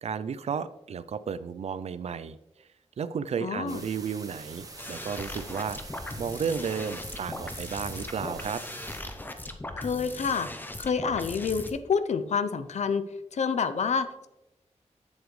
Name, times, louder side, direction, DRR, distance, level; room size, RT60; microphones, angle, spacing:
voice 1, 0.0-2.7 3.0-5.8 6.2-8.6, right 6 dB, 65° right, 14 dB, 0.4 m, -33 dB
voice 2, 3.4-3.8 9.8-10.5 10.8-13.0 13.3-14.3, left 6 dB, 75° left, 11 dB, 0.6 m, -28 dB
sound 1, 3.7-9.0, right 3 dB, 30° right, 1.0 m, -45 dB
sound 2, 4.8-11.7, left 1 dB, 15° left, 0.6 m, -39 dB
7.9 x 7.2 x 3.2 m, 0.91 s
wide cardioid pair, 155°, 12 cm